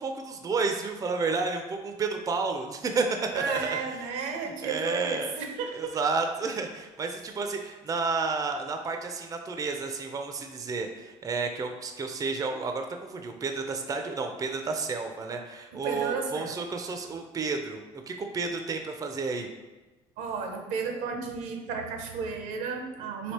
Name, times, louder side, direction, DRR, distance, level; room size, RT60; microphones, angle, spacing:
voice 1, 0.0-3.0 3.3-3.8 4.6-5.3 5.7-19.5, right 4 dB, 25° right, 5 dB, 0.4 m, -31 dB
voice 2, 3.3-6.0 15.7-16.6 20.2-23.3, right 5 dB, 75° right, 4 dB, 0.6 m, -33 dB
3.3 x 2.8 x 4.1 m, 1.1 s
supercardioid pair, 80°, 13 cm